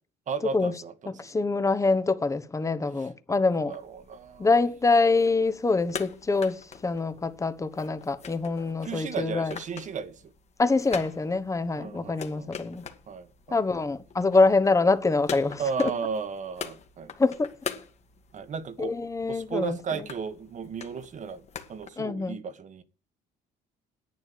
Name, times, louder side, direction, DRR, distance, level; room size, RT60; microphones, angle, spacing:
voice 1, 0.3-1.4 3.0-3.1 3.7-4.6 8.8-10.3 11.8-12.5 13.1-13.6 15.6-17.1 18.3-19.0 19.2-22.8, right 6 dB, 45° right, 1.6 m, -35 dB
voice 2, 1.2-3.7 4.4-9.6 10.6-12.8 13.5-15.9 17.2-17.5 18.8-20.0 22.0-22.4, left 3 dB, 20° left, 1.2 m, -25 dB
sound 1, 3.7-21.9, left 6 dB, 40° left, 2.0 m, -44 dB
11.0 x 8.8 x 8.7 m
cardioid pair, 110°, 17 cm